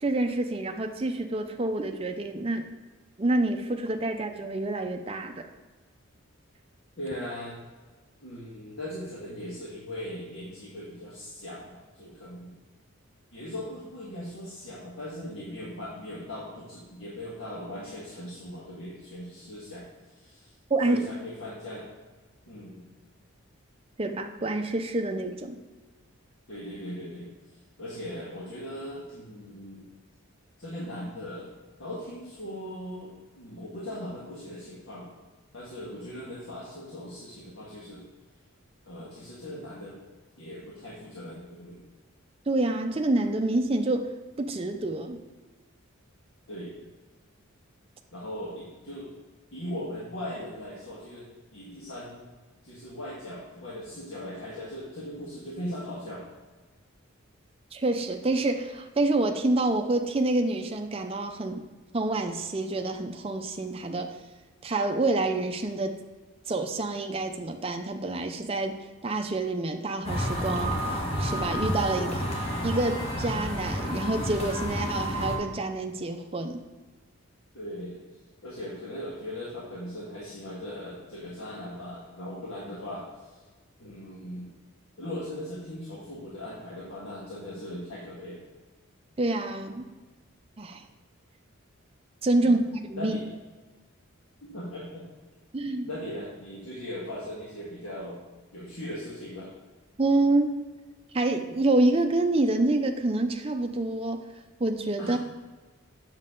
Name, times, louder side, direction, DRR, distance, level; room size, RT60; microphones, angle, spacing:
voice 1, 0.0-2.6 3.2-5.5 20.7-21.0 24.0-25.6 42.5-44.1 44.4-45.2 57.7-61.6 61.9-64.1 64.6-66.0 66.5-70.8 71.2-72.2 72.6-76.6 89.2-89.9 90.6-90.8 92.2-92.6 92.9-93.2 95.5-95.9 100.0-100.6 101.1-104.2 104.6-105.2, right 2 dB, 25° right, 5 dB, 0.5 m, -27 dB
voice 2, 7.0-7.6 8.2-12.6 13.3-20.5 20.8-21.9 22.5-22.8 26.5-27.3 27.8-29.9 30.6-31.5 31.8-35.1 35.5-38.0 38.8-40.0 40.4-41.8 46.5-46.8 48.1-49.1 49.5-51.3 51.5-52.3 52.6-56.2 77.5-78.0 78.4-83.4 83.8-84.5 85.0-88.4 92.4-92.5 92.9-93.2 94.4-95.1 95.8-98.2 98.5-99.5 105.0-105.2, left 1 dB, 65° left, -6 dB, 1.6 m, -39 dB
sound 1, 70.0-75.4, equal, 25° left, 1.3 m, -30 dB
7.8 x 6.3 x 3.7 m, 1.3 s
head